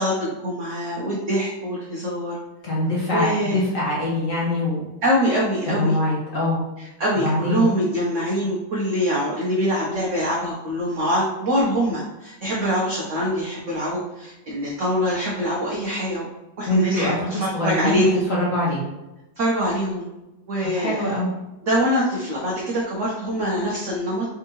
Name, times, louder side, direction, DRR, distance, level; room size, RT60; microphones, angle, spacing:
voice 1, 0.0-2.4 3.1-3.7 5.0-6.0 6.8-16.3 16.6-18.2 19.4-20.1 20.5-21.1 21.6-24.3, equal, 70° right, -4 dB, 0.7 m, -24 dB
voice 2, 2.6-4.8 5.7-6.6 7.2-7.6 16.7-18.0 18.3-18.8 20.7-21.3, left 1 dB, 55° left, -5 dB, 1.0 m, -23 dB
3.5 x 3.4 x 3.0 m, 0.98 s
omnidirectional pair, 2.2 m